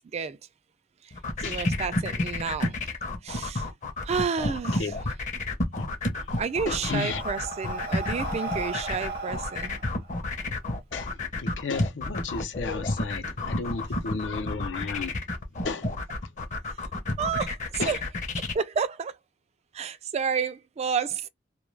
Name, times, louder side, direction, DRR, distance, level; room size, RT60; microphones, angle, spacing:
sound 1, 1.1-18.5, left 2 dB, 40° left, 0.7 m, -30 dB
voice 1, 1.4-2.8 3.2-3.7 4.0-5.1 6.4-9.8 17.2-19.2 19.7-21.3, right 6 dB, 35° right, 0.3 m, -31 dB
Breathing, 6.1-10.8, right 2 dB, 55° right, 0.8 m, -37 dB
voice 2, 6.6-7.2 10.9-15.1 15.6-15.9 17.8-17.9, left 4 dB, 85° left, 0.6 m, -33 dB
2.2 x 2.2 x 3.1 m
head